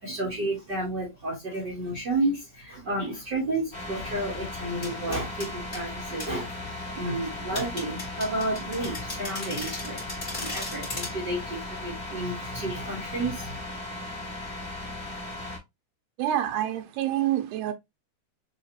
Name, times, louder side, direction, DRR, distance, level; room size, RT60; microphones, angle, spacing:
voice 1, 0.0-13.6, right 1 dB, 55° right, 1.2 m, -31 dB
sound 1, 3.7-15.6, left 2 dB, 35° left, 0.8 m, -37 dB
sound 2, 4.8-5.8 6.2-6.3 7.5-11.1, left 2 dB, 80° left, 0.5 m, -37 dB
voice 2, 16.2-17.7, right 12 dB, 85° right, 2.8 m, -27 dB
6.2 x 2.4 x 2.9 m
omnidirectional pair, 4.6 m